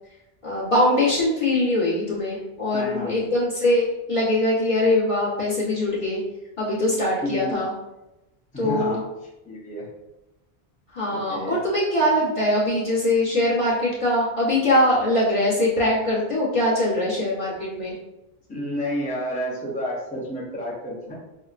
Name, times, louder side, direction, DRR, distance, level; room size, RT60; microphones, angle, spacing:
voice 1, 0.4-6.2 6.6-7.7 8.6-9.0 10.9-18.0, left 1 dB, 35° left, -7 dB, 1.0 m, -22 dB
voice 2, 2.7-3.3 7.2-7.6 8.5-9.0 9.5-9.9 11.1-11.6 18.5-21.1, equal, 10° left, -6 dB, 0.7 m, -30 dB
5.5 x 2.1 x 2.4 m, 0.95 s
omnidirectional pair, 1.0 m